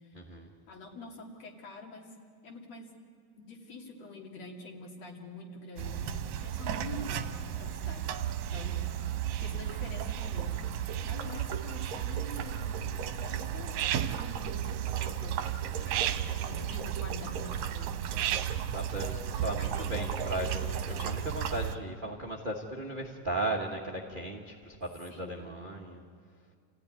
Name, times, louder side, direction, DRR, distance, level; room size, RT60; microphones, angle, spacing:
voice 1, 0.1-0.5 15.8-16.1 18.1-26.0, right 1 dB, 45° right, 1 dB, 0.6 m, -37 dB
voice 2, 0.7-2.1 2.4-2.9 3.4-8.8 9.4-10.6 10.8-15.5 15.8-17.9 19.5-21.2 25.1-25.4, left 2 dB, 60° left, 0 dB, 3.6 m, -46 dB
sound 1, 5.8-21.8, right 9 dB, 75° right, 2.1 m, -33 dB
28.5 x 16.0 x 9.6 m, 2.1 s
omnidirectional pair, 3.6 m